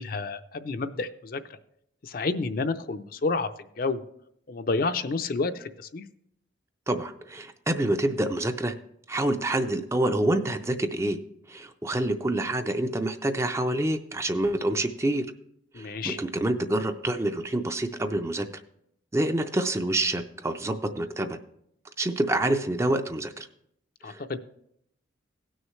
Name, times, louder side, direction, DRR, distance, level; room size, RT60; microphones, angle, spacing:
voice 1, 0.0-1.4 2.0-3.5 3.8-4.0 4.5-6.0 15.7-16.2 24.0-24.4, left 3 dB, 50° left, 10 dB, 0.5 m, -29 dB
voice 2, 6.9-8.7 9.1-11.2 11.5-15.3 15.8-18.5 19.1-21.4 22.0-23.5 24.0-24.4, right 1 dB, 15° right, 8 dB, 0.4 m, -27 dB
18.0 x 6.4 x 3.1 m, 0.73 s
head